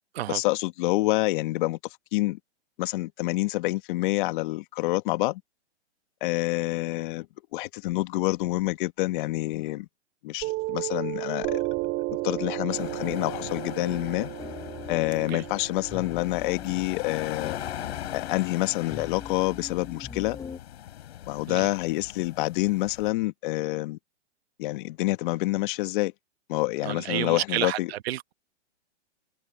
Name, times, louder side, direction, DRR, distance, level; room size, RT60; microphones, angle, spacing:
voice 1, 0.3-1.8 2.1-2.4 2.8-5.4 6.2-7.3 7.5-9.9 10.2-11.6 12.2-14.3 14.9-17.6 18.1-20.4 21.3-24.0 24.6-26.1 26.5-27.9, left 19 dB, 45° left, 1.7 m, -27 dB
Piano, 10.4-17.5, right 21 dB, 30° right, 2.9 m, -34 dB
sound 1, 12.7-23.1, left 12 dB, 65° left, 7.3 m, -41 dB
sound 2, 13.9-20.6, left 6 dB, 10° left, 0.7 m, -42 dB
voice 2, 26.8-28.3, right 14 dB, 60° right, 1.1 m, -30 dB
hypercardioid pair, 135°, 35 cm